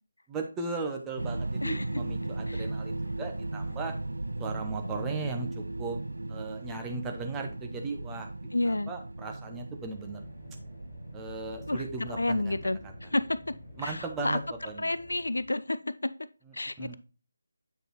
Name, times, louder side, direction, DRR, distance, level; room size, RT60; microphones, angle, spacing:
voice 1, 0.3-3.9 4.4-6.0 6.3-8.3 8.6-10.2 11.1-12.9 13.8-14.9 16.4-17.0, right 3 dB, 10° right, 3 dB, 0.8 m, -37 dB
sound 1, 1.2-15.2, right 2 dB, 70° right, 0.3 m, -37 dB
voice 2, 8.5-8.9 11.7-11.8 12.2-13.4 13.8-14.0 14.2-14.4 14.8-16.1 16.5-17.0, left 2 dB, 70° left, 15 dB, 0.4 m, -30 dB
sound 2, 9.8-15.4, left 2 dB, 20° left, 0.9 m, -51 dB
8.1 x 5.1 x 3.0 m, 0.34 s
figure-of-eight pair, 155°, 0 cm